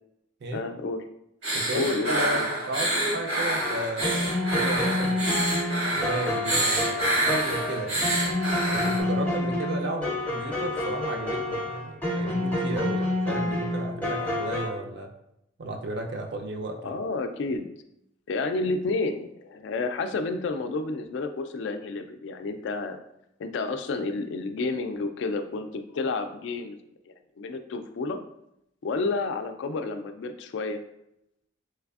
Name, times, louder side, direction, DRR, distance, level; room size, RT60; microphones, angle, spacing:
voice 1, 0.5-1.0 1.7-2.5 16.8-17.7 18.3-23.0 23.4-26.8 27.1-28.2 28.8-30.8, left 3 dB, 60° left, 7 dB, 0.3 m, -30 dB
sound 1, 1.4-9.0, right 1 dB, 80° right, 1.2 m, -27 dB
voice 2, 1.5-2.4 2.7-4.3 4.5-5.2 5.9-8.1 8.7-15.1 15.6-16.9, right 2 dB, 55° right, 3 dB, 0.5 m, -34 dB
sound 2, 3.6-14.7, left 1 dB, 10° left, 0.5 m, -28 dB
3.3 x 3.2 x 2.3 m, 0.81 s
head